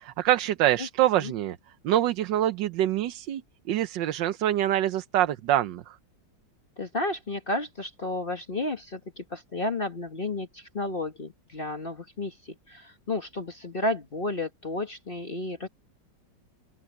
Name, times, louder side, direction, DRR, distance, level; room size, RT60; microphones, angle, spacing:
voice 1, 0.0-1.6 1.8-3.4 3.7-5.9, right 12 dB, 75° right, 1.4 m, -25 dB
voice 2, 6.8-15.7, left 2 dB, 30° left, 1.5 m, -32 dB
open air
omnidirectional pair, 2.0 m